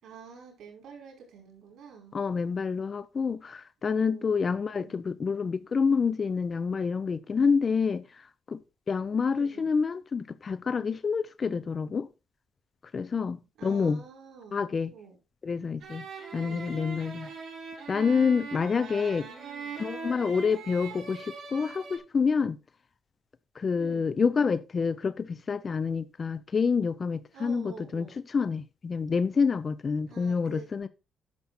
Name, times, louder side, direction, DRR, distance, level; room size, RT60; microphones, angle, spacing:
voice 1, 0.0-2.2 3.8-5.0 9.3-9.7 13.6-15.2 16.4-16.7 19.0-19.8 23.8-24.1 27.3-28.2 30.1-30.7, right 6 dB, 75° right, 5.0 m, -48 dB
voice 2, 2.1-8.6 8.9-12.1 12.9-14.0 14.5-14.9 15.4-16.1 16.3-17.3 17.9-19.2 19.8-22.6 23.6-30.9, left 5 dB, 40° left, 0.6 m, -28 dB
sound 1, 15.8-22.0, right 5 dB, 55° right, 4.1 m, -41 dB
10.5 x 7.0 x 4.2 m
cardioid pair, 90°, 0 cm